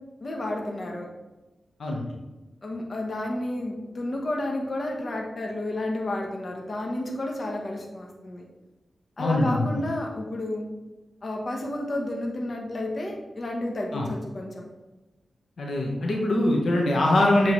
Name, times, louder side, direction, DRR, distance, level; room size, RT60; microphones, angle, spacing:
voice 1, 0.2-1.1 2.6-8.4 9.2-10.7 11.2-14.7, left 1 dB, 45° left, 1 dB, 1.1 m, -31 dB
voice 2, 9.2-9.8 13.9-14.1 15.6-17.5, left 1 dB, 75° left, -1 dB, 1.1 m, -23 dB
7.3 x 4.5 x 3.2 m, 1.1 s
cardioid pair, 60°, 0 cm